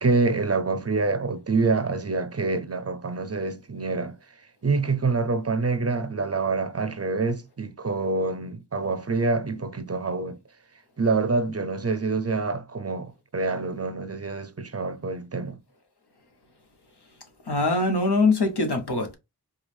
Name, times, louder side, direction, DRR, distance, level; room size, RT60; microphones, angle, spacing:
voice 1, 0.0-4.2 4.6-10.4 11.0-15.6, right 3 dB, 40° right, 0.5 m, -26 dB
voice 2, 17.5-19.1, left 3 dB, 75° left, 1.1 m, -22 dB
4.7 x 2.3 x 3.4 m
wide cardioid pair, 45°, 40 cm